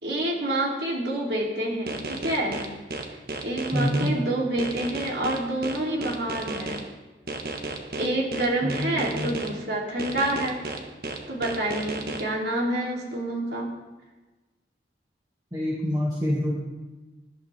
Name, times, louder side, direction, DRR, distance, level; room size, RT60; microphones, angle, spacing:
voice 1, 0.0-2.7 3.4-6.8 8.0-10.6 11.3-13.7, right 1 dB, 80° right, -2 dB, 3.3 m, -28 dB
sound 1, 1.9-4.1 4.6-6.8 7.3-9.5 10.0-12.2, right 3 dB, 55° right, 1.4 m, -33 dB
voice 2, 3.7-4.1 8.6-8.8 9.1-9.3 15.5-16.5, left 1 dB, 20° right, -6 dB, 2.2 m, -26 dB
20.5 x 11.5 x 3.6 m, 1.2 s
head